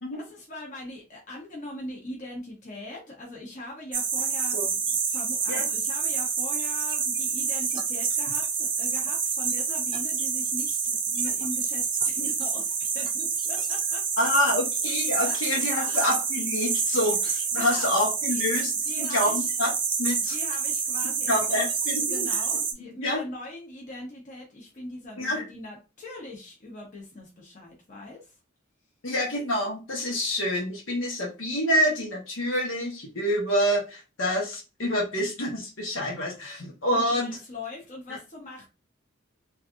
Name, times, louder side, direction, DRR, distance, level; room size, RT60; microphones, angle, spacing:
voice 1, 0.1-14.3 15.2-16.0 17.5-18.5 18.8-19.5 20.2-21.7 22.1-28.3 36.9-38.6, left 1 dB, 40° left, -2 dB, 0.9 m, -41 dB
sound 1, 3.9-22.7, right 6 dB, 25° right, 0.5 m, -28 dB
voice 2, 14.2-19.7 20.0-20.3 21.3-22.3 22.8-23.2 25.2-25.4 29.0-37.3, equal, 90° left, -2 dB, 1.1 m, -27 dB
3.2 x 2.7 x 2.4 m, 0.29 s
head